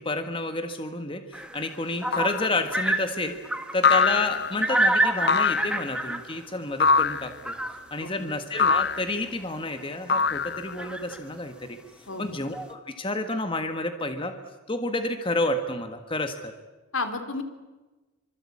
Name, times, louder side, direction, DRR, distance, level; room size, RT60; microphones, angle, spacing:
voice 1, 0.0-3.4 3.7-7.6 7.9-11.8 12.2-14.3 14.7-16.5, left 2 dB, 25° left, 7 dB, 1.7 m, -30 dB
sound 1, 1.3-4.0 4.6-6.5 7.3-8.1 8.5-8.9 9.7-9.8 10.0-10.1 10.8-11.2 12.1-12.2 12.5-12.7, right 1 dB, 5° right, 1.7 m, -28 dB
sound 2, 2.1-2.5 3.8-4.6 5.3-5.9 6.8-7.3 8.6-9.1 10.1-10.8, left 5 dB, 50° left, 0.9 m, -23 dB
voice 2, 8.0-8.3 12.1-12.4 16.9-17.4, left 3 dB, 75° left, 8 dB, 3.1 m, -32 dB
26.5 x 25.5 x 8.7 m, 1.2 s
head